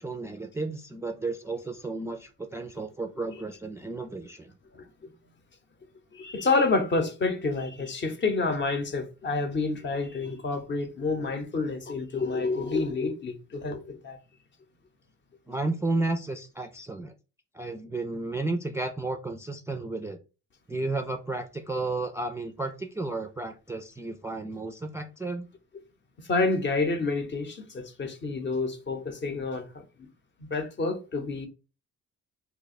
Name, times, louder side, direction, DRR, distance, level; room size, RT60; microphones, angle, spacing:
voice 1, 0.0-4.5 15.5-17.1 17.5-20.2 20.7-25.5, right 2 dB, 10° right, 0.3 m, -33 dB
voice 2, 4.7-5.1 6.1-14.2 26.3-30.1 30.4-31.5, left 3 dB, 40° left, 0.7 m, -29 dB
2.8 x 2.2 x 4.1 m
cardioid pair, 90°, 30 cm